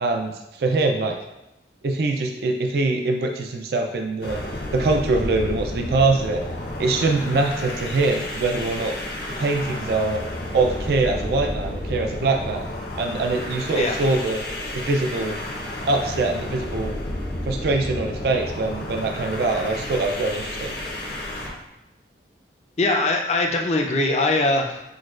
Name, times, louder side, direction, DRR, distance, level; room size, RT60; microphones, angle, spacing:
voice 1, 0.0-0.3 0.6-1.2 1.8-4.4 4.7-6.4 6.8-8.9 9.3-10.2 10.5-12.7 12.9-14.4 14.7-15.4 15.9-17.0 17.5-20.7, right 3 dB, 60° right, 3 dB, 0.4 m, -23 dB
sound 1, 4.2-21.6, left 1 dB, 65° left, 0.8 m, -31 dB
voice 2, 22.8-24.8, left 2 dB, 40° left, 2 dB, 0.4 m, -21 dB
6.1 x 2.2 x 2.4 m, 0.94 s
head